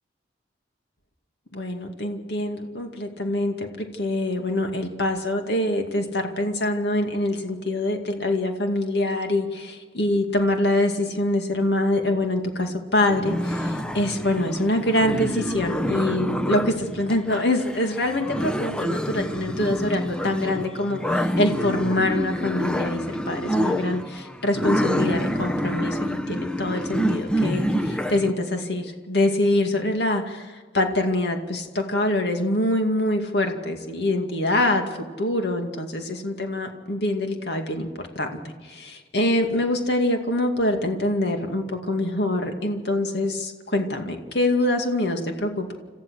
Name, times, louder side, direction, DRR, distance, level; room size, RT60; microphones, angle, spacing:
voice 1, 1.5-37.9 38.2-45.7, left 1 dB, 70° left, 4 dB, 2.3 m, -25 dB
sound 1, 13.1-28.3, equal, 5° left, 0.7 m, -27 dB
27.5 x 15.0 x 6.5 m, 1.4 s
head